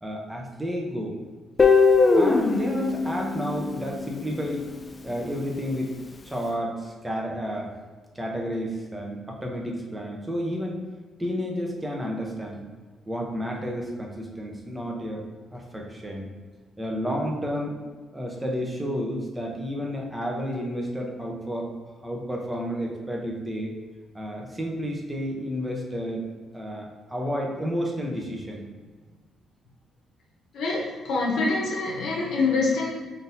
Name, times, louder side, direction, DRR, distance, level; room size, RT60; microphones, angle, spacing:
voice 1, 0.0-1.2 2.2-4.7 5.0-5.9 6.2-7.8 8.1-10.8 11.2-12.6 13.1-15.3 15.5-16.3 16.8-17.8 18.1-21.7 22.0-23.7 24.1-26.3 26.5-28.7, equal, 10° right, -1 dB, 0.7 m, -31 dB
Guitar, 1.6-4.5, left 4 dB, 30° left, 0.3 m, -21 dB
voice 2, 30.5-32.9, left 3 dB, 75° left, -3 dB, 0.8 m, -25 dB
3.8 x 2.7 x 2.6 m, 1.4 s
cardioid pair, 90°, 0 cm